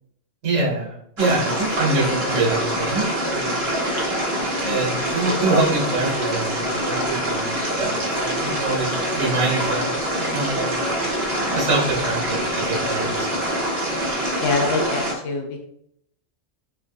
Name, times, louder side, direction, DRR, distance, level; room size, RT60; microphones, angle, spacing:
voice 1, 0.4-3.6 4.6-7.5 7.8-9.8 10.2-10.8 11.5-12.2 12.6-13.4, right 3 dB, 75° right, -3 dB, 1.4 m, -25 dB
sound 1, 1.2-15.1, equal, 55° right, 1.2 m, -25 dB
voice 2, 1.8-2.5 4.6-5.0 5.4-5.5 14.4-15.7, left 3 dB, 70° left, 3 dB, 0.9 m, -27 dB
4.4 x 2.5 x 2.6 m, 0.71 s
omnidirectional pair, 1.3 m